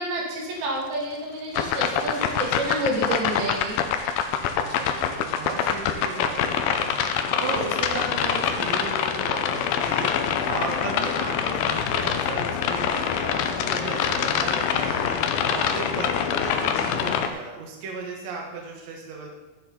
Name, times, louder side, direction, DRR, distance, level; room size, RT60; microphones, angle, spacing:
voice 1, 0.0-3.8, right 1 dB, 85° right, -3 dB, 4.2 m, -29 dB
sound 1, 1.6-17.3, left 8 dB, 85° left, 2.5 m, -25 dB
voice 2, 4.5-19.3, right 4 dB, 55° right, -1 dB, 2.5 m, -35 dB
12.5 x 7.9 x 4.2 m, 1.1 s
omnidirectional pair, 4.2 m